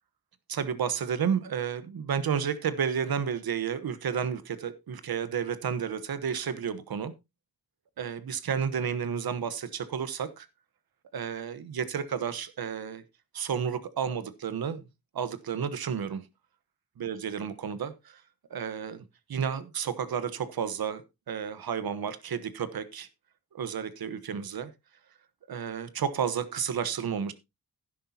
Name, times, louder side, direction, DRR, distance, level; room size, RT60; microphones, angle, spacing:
voice 1, 0.5-7.1 8.0-10.5 11.1-13.0 13.3-14.9 15.1-16.2 17.0-18.2 18.5-23.1 23.5-24.7 25.5-27.3, right 7 dB, 75° right, 13 dB, 1.2 m, -31 dB
12.0 x 10.0 x 2.8 m, 0.23 s
cardioid pair, 65°, 37 cm